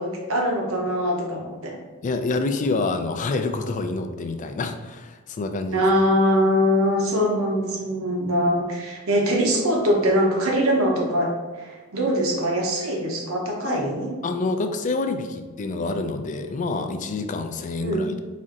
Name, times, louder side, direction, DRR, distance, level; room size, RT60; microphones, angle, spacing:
voice 1, 0.0-1.8 5.7-14.1 17.8-18.1, equal, 65° right, 0 dB, 0.8 m, -22 dB
voice 2, 2.0-5.9 13.6-13.9 14.2-18.2, left 3 dB, 35° left, 7 dB, 0.3 m, -27 dB
4.2 x 2.6 x 3.7 m, 1.3 s
head